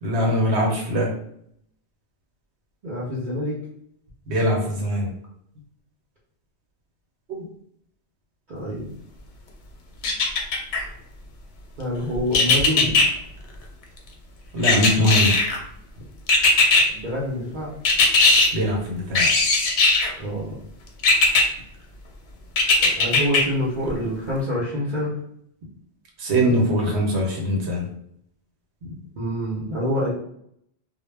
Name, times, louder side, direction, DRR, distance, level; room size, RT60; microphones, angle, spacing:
voice 1, 0.0-1.1 4.3-5.1 14.5-15.4 18.5-19.3 26.2-27.9, equal, 80° right, -1 dB, 1.0 m, -22 dB
voice 2, 2.8-3.6 8.5-8.9 11.8-13.0 16.9-17.7 20.2-20.6 22.8-25.2 26.4-26.5 28.8-30.1, equal, 50° right, -7 dB, 0.7 m, -27 dB
sound 1, 10.0-10.8 12.3-13.1 14.6-15.6 16.3-16.8 17.9-18.5 19.2-20.1 21.0-21.4 22.6-23.4 23.9-24.0, left 3 dB, 85° left, 0.9 m, -17 dB
2.1 x 2.0 x 3.2 m, 0.70 s
omnidirectional pair, 1.1 m